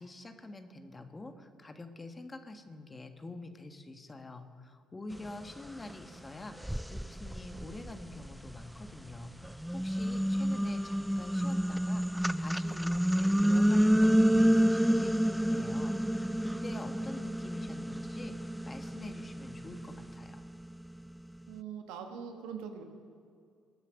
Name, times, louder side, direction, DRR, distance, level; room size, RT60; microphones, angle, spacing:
voice 1, 0.0-20.4, left 2 dB, 25° left, 7 dB, 1.6 m, -46 dB
sound 1, 5.9-6.0 6.6-8.9 9.4-20.7, equal, 5° right, 0.3 m, -29 dB
voice 2, 21.5-22.8, right 7 dB, 75° right, 5 dB, 1.4 m, -42 dB
19.5 x 8.2 x 6.5 m, 2.3 s
hypercardioid pair, 45°, 0 cm